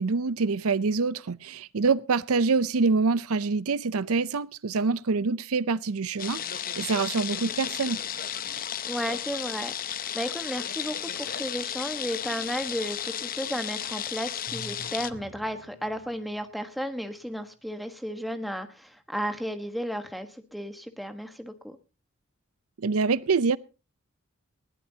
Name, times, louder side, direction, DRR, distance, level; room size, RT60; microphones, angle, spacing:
voice 1, 0.0-8.0 22.8-23.6, right 4 dB, 85° right, 0.6 m, -26 dB
sound 1, 6.2-15.1, left 9 dB, 40° left, 0.7 m, -34 dB
voice 2, 8.5-21.8, equal, ahead, 1.3 m, -34 dB
Drum, 14.5-16.5, equal, 90° left, 5.1 m, -47 dB
20.0 x 15.5 x 2.8 m
head